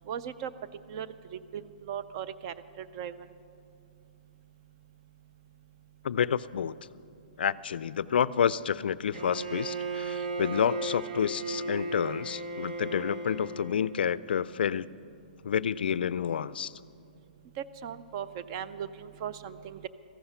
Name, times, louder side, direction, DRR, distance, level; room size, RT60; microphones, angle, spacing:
voice 1, 0.1-0.5 0.9-1.1 1.5-1.6 1.9-3.1 17.8-19.9, right 9 dB, 30° right, 14 dB, 0.4 m, -37 dB
voice 2, 6.0-6.7 7.4-14.9 15.4-16.7, left 8 dB, 80° left, 19 dB, 0.3 m, -29 dB
Bowed string instrument, 9.1-13.9, right 2 dB, 60° right, 1.5 m, -35 dB
14.5 x 11.5 x 5.6 m, 2.5 s
hypercardioid pair, 165°, 5 cm